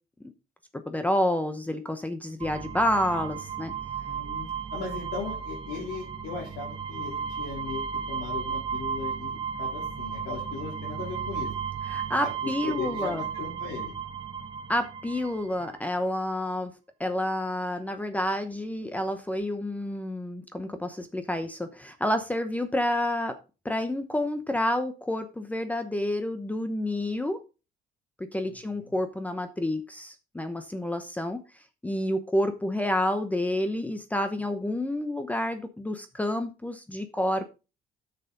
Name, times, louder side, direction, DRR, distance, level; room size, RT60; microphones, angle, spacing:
voice 1, 0.7-3.7 11.9-13.2 14.7-16.7 17.0-23.4 23.6-27.4 28.2-37.5, left 1 dB, 10° left, 9 dB, 0.8 m, -29 dB
sound 1, 2.4-15.8, right 7 dB, 30° right, 1.1 m, -34 dB
voice 2, 4.0-11.5 12.4-13.9 28.4-28.9, left 5 dB, 90° left, -3 dB, 3.6 m, -38 dB
8.8 x 6.8 x 3.9 m, 0.31 s
cardioid pair, 110°, 17 cm